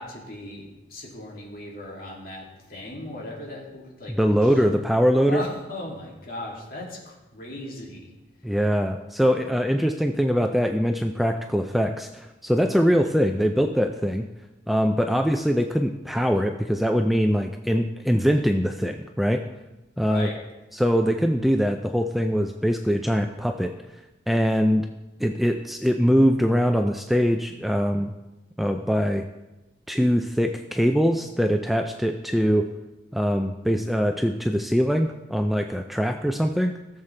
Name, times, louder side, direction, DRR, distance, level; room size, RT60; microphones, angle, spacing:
voice 1, 0.0-4.3 5.2-8.1 20.0-20.4, left 1 dB, 50° left, -3 dB, 2.5 m, -37 dB
voice 2, 4.1-5.4 8.4-14.2 14.7-19.4 20.0-20.3 20.7-23.7 24.3-24.9 25.2-28.1 28.6-29.2 29.9-32.7 33.1-36.7, equal, ahead, 5 dB, 0.3 m, -22 dB
16.5 x 7.3 x 3.3 m, 1.1 s
head